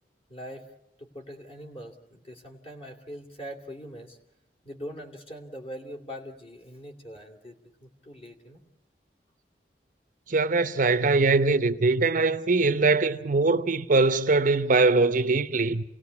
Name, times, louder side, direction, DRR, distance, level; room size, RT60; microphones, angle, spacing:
voice 1, 0.3-0.7 1.0-4.2 4.6-8.6, equal, 35° left, 2.9 m, -42 dB
voice 2, 10.3-15.8, right 3 dB, 50° right, 0.8 m, -22 dB
29.0 x 18.0 x 8.4 m
head